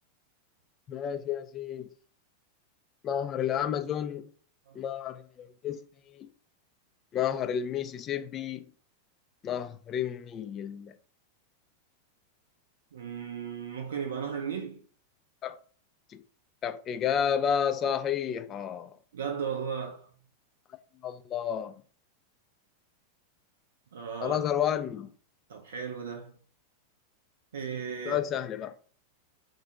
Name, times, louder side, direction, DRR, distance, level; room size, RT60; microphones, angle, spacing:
voice 1, 0.9-1.9 3.0-4.3 4.8-5.8 6.1-6.3 7.1-8.6 9.4-10.9 15.4-15.5 16.1-16.2 16.6-18.9 21.0-21.7 24.2-25.1 28.1-28.7, left 9 dB, 30° left, 0.3 m, -31 dB
voice 2, 12.9-14.8 19.1-20.1 23.9-24.4 25.5-26.4 27.5-28.2, right 7 dB, 65° right, 0.4 m, -35 dB
2.6 x 2.2 x 3.6 m
figure-of-eight pair, 90°, 0 cm